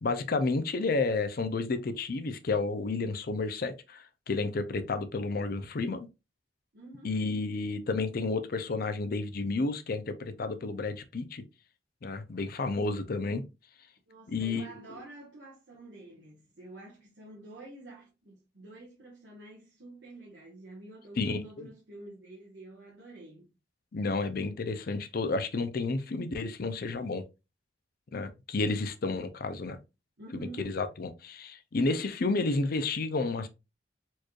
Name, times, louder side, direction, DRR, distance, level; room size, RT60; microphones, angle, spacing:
voice 1, 0.0-6.1 7.0-11.4 12.0-13.4 14.3-14.8 21.2-21.7 23.9-27.2 28.1-29.8 30.3-33.5, left 3 dB, 50° left, 0.5 m, -31 dB
voice 2, 6.7-7.1 14.1-23.5 30.2-30.7, right 2 dB, 65° right, 1.2 m, -48 dB
4.4 x 3.1 x 2.3 m
head